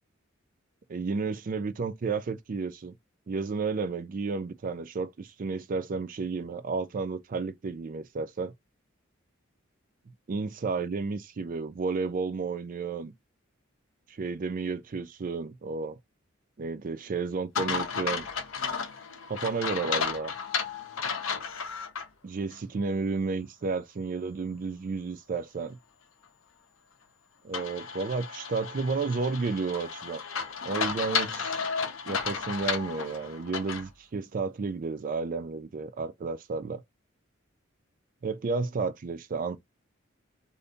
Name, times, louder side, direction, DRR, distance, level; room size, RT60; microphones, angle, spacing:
voice 1, 0.9-2.9 3.3-8.5 10.3-13.1 14.1-16.0 16.6-18.3 19.3-20.3 22.2-25.8 27.4-30.2 30.6-31.6 32.1-36.8 38.2-39.6, right 4 dB, 40° right, 0.4 m, -32 dB
sound 1, 17.5-22.1 22.5-22.6 27.5-33.9, left 6 dB, 85° left, 0.7 m, -33 dB
2.6 x 2.6 x 3.4 m
head